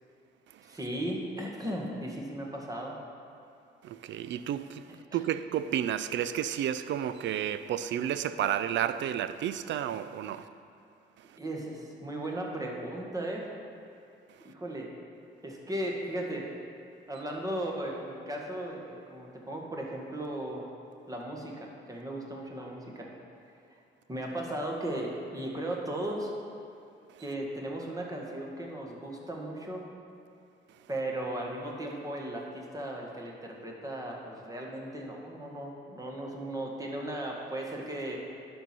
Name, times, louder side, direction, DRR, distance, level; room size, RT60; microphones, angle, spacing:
voice 1, 0.6-3.0 5.1-5.2 11.4-13.5 14.4-14.9 15.4-16.5 17.1-20.7 21.1-23.1 23.7-23.8 24.1-26.3 27.2-29.9 30.9-38.2, right 1 dB, 15° right, 1.7 m, -36 dB
voice 2, 3.8-10.5 11.3-11.4, right 10 dB, 70° right, 0.4 m, -31 dB
11.0 x 4.6 x 6.0 m
cardioid pair, 90°, 20 cm